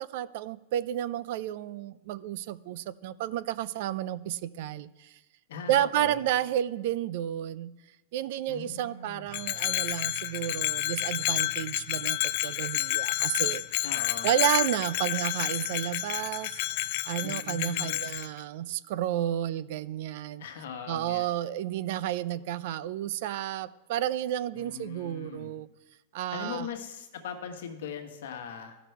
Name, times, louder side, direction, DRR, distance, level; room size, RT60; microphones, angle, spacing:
voice 1, 0.0-5.1 5.7-7.7 8.1-13.8 14.2-16.5 17.0-20.4 20.9-25.7 26.1-26.7, right 12 dB, 60° right, 18 dB, 0.4 m, -31 dB
voice 2, 5.5-6.3 8.5-9.2 13.8-14.4 17.2-18.0 20.4-21.3 24.5-25.6 26.3-28.8, left 7 dB, 75° left, 5 dB, 1.3 m, -40 dB
Bell, 9.3-18.3, left 16 dB, 55° left, 0.4 m, -30 dB
13.5 x 6.0 x 4.6 m, 1.0 s
hypercardioid pair, 120°, 0 cm